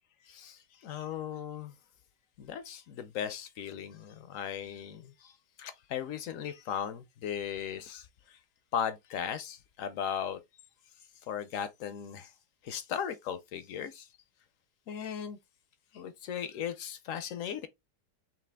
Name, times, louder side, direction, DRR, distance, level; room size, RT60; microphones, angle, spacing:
voice 1, 0.3-1.7 2.4-5.3 5.6-8.4 8.7-10.4 11.3-12.3 12.6-14.1 14.9-15.4 15.9-17.7, left 8 dB, 70° left, 0.8 m, -37 dB
5.8 x 2.4 x 3.4 m
omnidirectional pair, 1.9 m